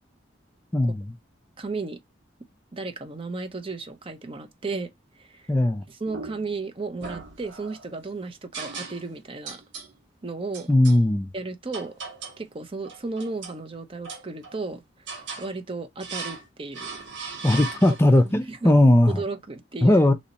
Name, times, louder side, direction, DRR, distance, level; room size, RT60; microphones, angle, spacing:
voice 1, 0.7-1.1 5.5-5.8 10.7-11.3 17.4-19.2 19.8-20.1, left 1 dB, 15° left, 0.4 m, -18 dB
voice 2, 1.6-2.0 2.7-4.9 5.2-5.5 5.9-9.6 10.2-10.7 11.3-11.9 12.4-14.8 15.4-17.0 18.2-18.8 19.1-20.1, right 3 dB, 30° right, 0.6 m, -34 dB
sound 1, 6.1-6.6 7.0-7.9 8.5-9.2 9.5-9.9 10.5-11.0 11.7-12.5 12.8-13.6 14.0-14.7 15.1-15.5 16.0-16.5 16.7-18.2, right 4 dB, 80° right, 1.1 m, -38 dB
3.1 x 2.7 x 4.0 m
head